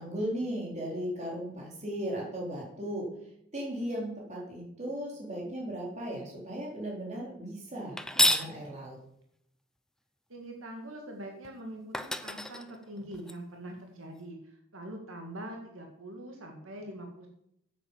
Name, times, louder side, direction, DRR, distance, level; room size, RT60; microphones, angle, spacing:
voice 1, 0.0-3.1 3.5-9.0, equal, 35° right, -2 dB, 3.8 m, -36 dB
sound 1, 8.0-8.5 11.4-11.5 11.9-13.3, left 1 dB, 5° left, 0.5 m, -29 dB
voice 2, 10.3-17.3, right 1 dB, 75° right, 2 dB, 2.1 m, -43 dB
9.3 x 8.6 x 7.3 m, 0.75 s
head